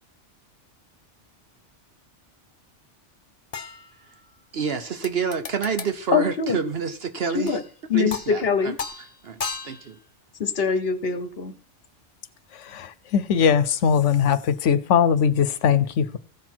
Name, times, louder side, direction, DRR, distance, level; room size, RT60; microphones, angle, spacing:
sound 1, 3.5-4.4 5.0-6.0 7.5-7.8 8.1-8.5 8.8-10.0 12.6-12.7, left 5 dB, 35° left, 0.7 m, -36 dB
voice 1, 4.5-7.6 7.9-8.7 9.2-10.0, right 6 dB, 60° right, 1.0 m, -28 dB
voice 2, 6.1-6.6 7.3-7.6 7.9-8.8 10.4-11.5, left 6 dB, 55° left, 1.2 m, -23 dB
voice 3, 12.5-16.2, left 7 dB, 85° left, 1.0 m, -21 dB
15.5 x 6.0 x 4.5 m
omnidirectional pair, 1.2 m